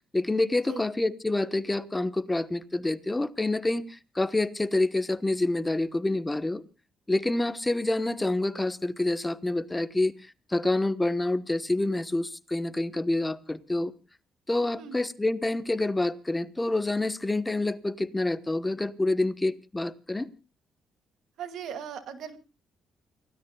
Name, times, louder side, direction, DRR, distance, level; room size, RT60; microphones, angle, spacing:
voice 1, 0.1-6.6 7.1-10.1 10.5-13.9 14.5-20.3, left 2 dB, 15° left, 1.1 m, -27 dB
voice 2, 21.4-22.4, right 8 dB, 75° right, 2.4 m, -38 dB
29.0 x 16.5 x 2.3 m
cardioid pair, 90°, 0 cm